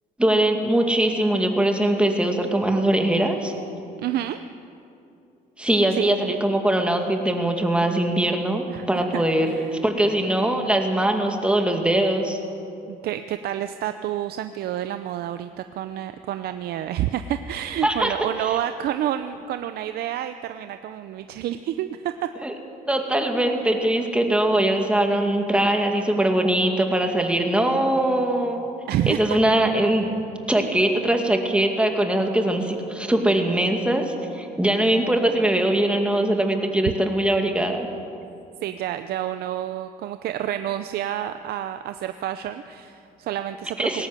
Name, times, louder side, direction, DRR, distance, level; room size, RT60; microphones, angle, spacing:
voice 1, 0.2-3.5 5.6-12.4 17.8-18.1 18.4-18.5 22.4-22.5 22.9-28.7 29.1-30.2 30.5-37.9 43.8-44.1, right 1 dB, 5° right, 3 dB, 2.3 m, -22 dB
voice 2, 4.0-4.4 5.9-6.2 8.7-9.7 12.9-22.3 28.9-29.4 38.6-44.1, right 11 dB, 70° right, 10 dB, 0.7 m, -29 dB
20.0 x 17.5 x 7.7 m, 2.6 s
cardioid pair, 110°, 17 cm